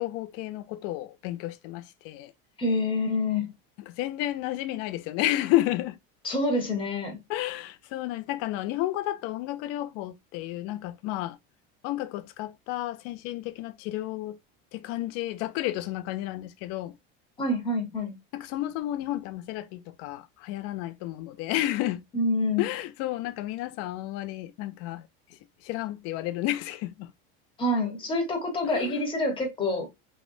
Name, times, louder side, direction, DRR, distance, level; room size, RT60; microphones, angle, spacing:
voice 1, 0.0-2.3 3.8-6.0 7.3-11.4 11.8-14.4 14.7-17.0 18.3-22.0 22.6-27.1 28.6-29.0, left 15 dB, 55° left, 0.4 m, -31 dB
voice 2, 2.6-3.5 6.2-7.2 17.4-18.1 22.1-22.6 27.6-29.9, left 2 dB, 15° left, 1.1 m, -27 dB
3.1 x 3.0 x 2.6 m
cardioid pair, 155°, 30 cm